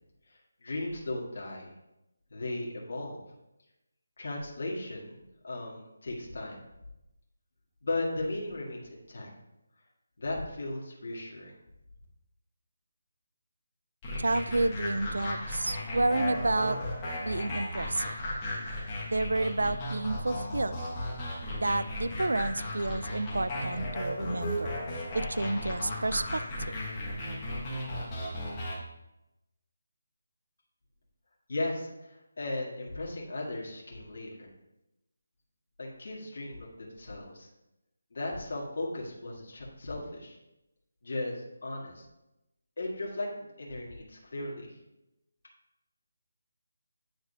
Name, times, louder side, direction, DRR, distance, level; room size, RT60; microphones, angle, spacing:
voice 1, 0.3-1.7 2.3-3.2 4.2-6.6 7.8-9.3 10.2-11.6 31.5-34.5 35.8-37.5 38.1-40.4 41.0-42.0 42.8-44.7, left 2 dB, 55° left, -3 dB, 1.6 m, -36 dB
sound 1, 14.0-28.8, left 1 dB, 15° left, 1.3 m, -35 dB
voice 2, 14.2-16.8 17.2-18.1 19.1-20.8 21.6-24.7 25.1-26.8, right 2 dB, 90° right, 14 dB, 0.4 m, -30 dB
9.3 x 4.1 x 2.8 m, 0.92 s
figure-of-eight pair, 175°, 0 cm